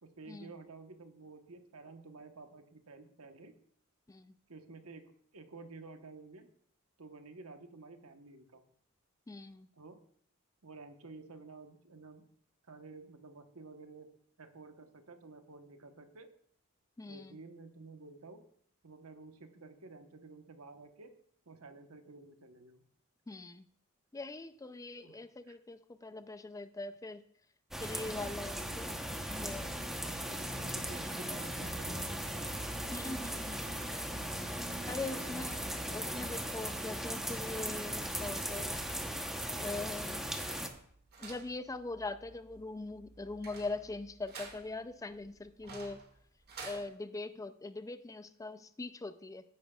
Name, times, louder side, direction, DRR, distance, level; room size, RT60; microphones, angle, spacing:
voice 1, 0.0-3.5 4.5-6.5 7.0-8.6 9.8-10.0 10.6-12.3 12.7-14.1 14.4-16.3 17.1-18.4 18.8-21.1 21.5-22.8 25.0-25.2 25.5-25.6 27.9-28.2 30.0-32.7 35.1-35.9, right 3 dB, 85° right, 6 dB, 1.1 m, -52 dB
voice 2, 9.3-9.7 17.0-17.4 23.3-23.6 24.1-27.2 27.8-29.7 32.9-33.7 34.9-35.6 35.9-38.8 39.6-40.3 41.2-46.0 46.6-49.4, left 3 dB, 15° left, 12 dB, 0.4 m, -42 dB
sound 1, 27.7-40.7, equal, ahead, 0.9 m, -38 dB
sound 2, 40.3-46.8, right 4 dB, 50° right, 1.8 m, -52 dB
15.0 x 9.4 x 2.4 m, 0.63 s
head